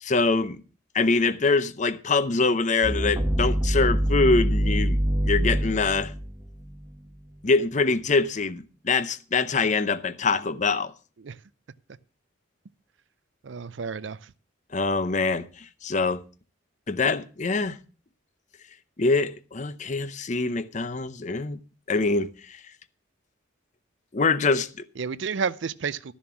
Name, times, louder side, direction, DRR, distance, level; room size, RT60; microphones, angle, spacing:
voice 1, 0.0-0.6 0.9-6.1 7.4-10.9 14.7-16.2 16.9-17.8 19.0-21.6 21.9-22.6 24.1-24.9, left 3 dB, 35° left, 0.7 m, -24 dB
sound 1, 2.8-6.9, equal, 15° right, 0.9 m, -24 dB
voice 2, 13.4-14.3 25.0-26.1, right 5 dB, 65° right, 0.5 m, -31 dB
12.5 x 7.2 x 6.0 m
head